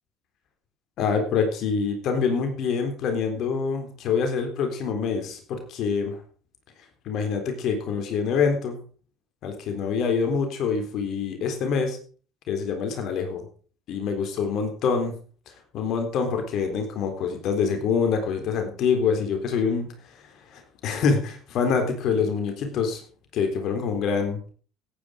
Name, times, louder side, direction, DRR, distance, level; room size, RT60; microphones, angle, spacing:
voice 1, 1.0-6.2 7.1-8.8 9.4-12.0 12.5-13.4 13.9-15.1 15.7-19.9 20.5-23.0 23.3-24.4, left 5 dB, 60° left, 6 dB, 3.8 m, -25 dB
17.0 x 9.5 x 5.1 m, 0.42 s
supercardioid pair, 80°, 0 cm